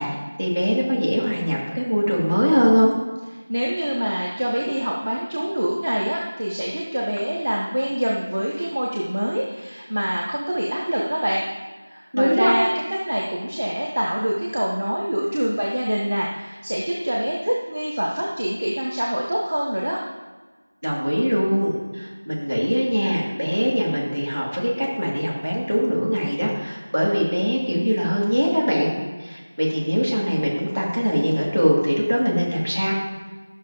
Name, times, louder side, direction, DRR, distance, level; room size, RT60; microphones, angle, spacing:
voice 1, 0.0-2.9 12.1-12.5 20.8-28.9 29.2-32.9, equal, 50° right, -4 dB, 2.2 m, -22 dB
voice 2, 3.5-11.4 11.9-12.7 13.0-20.0, equal, 35° right, -3 dB, 0.9 m, -25 dB
12.5 x 6.1 x 2.8 m, 1.3 s
figure-of-eight pair, 175°, 0 cm